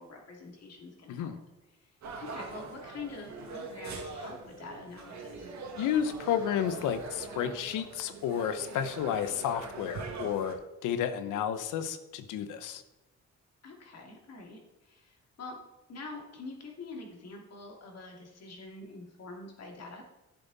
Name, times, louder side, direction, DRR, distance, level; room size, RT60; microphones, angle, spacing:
voice 1, 0.0-1.4 1.8-1.9 2.2-5.5 13.6-15.6 15.9-20.0, left 3 dB, 55° left, 1 dB, 2.7 m, -45 dB
sound 1, 2.0-10.5, right 4 dB, 65° right, 1.9 m, -42 dB
voice 2, 5.7-10.6 10.8-12.8, left 9 dB, 90° left, 11 dB, 0.9 m, -31 dB
11.0 x 8.1 x 4.1 m, 1.0 s
cardioid pair, 90°, 30 cm